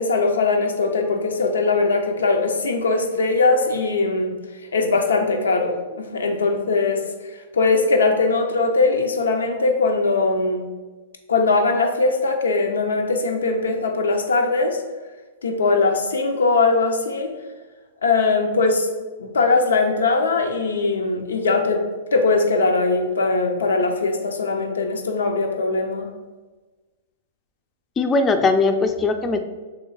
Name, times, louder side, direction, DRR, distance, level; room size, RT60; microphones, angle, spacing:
voice 1, 0.0-4.3 4.7-7.0 7.5-10.7 11.3-14.8 15.4-17.3 18.0-18.9 19.2-21.8 22.1-26.1, left 3 dB, 85° left, 4 dB, 0.6 m, -20 dB
voice 2, 28.0-29.4, left 3 dB, 20° left, 7 dB, 0.4 m, -19 dB
3.1 x 3.0 x 3.8 m, 1.3 s
hypercardioid pair, 115°, 0 cm